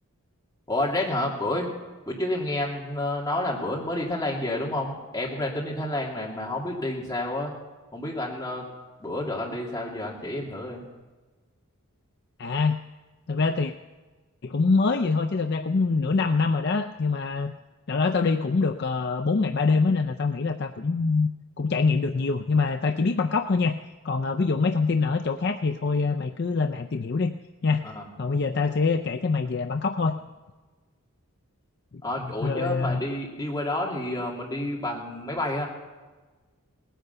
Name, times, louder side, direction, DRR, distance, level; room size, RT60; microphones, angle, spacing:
voice 1, 0.7-1.7 2.1-7.5 7.9-8.7 9.0-10.8 27.8-28.0 32.0-35.7, left 1 dB, 15° left, -3 dB, 2.6 m, -29 dB
voice 2, 12.4-12.8 13.3-13.7 14.4-17.5 17.9-21.3 21.6-23.8 24.0-27.3 27.6-27.8 28.2-30.2 32.4-33.0, left 4 dB, 50° left, 6 dB, 0.5 m, -24 dB
18.5 x 10.0 x 6.9 m, 1.3 s
head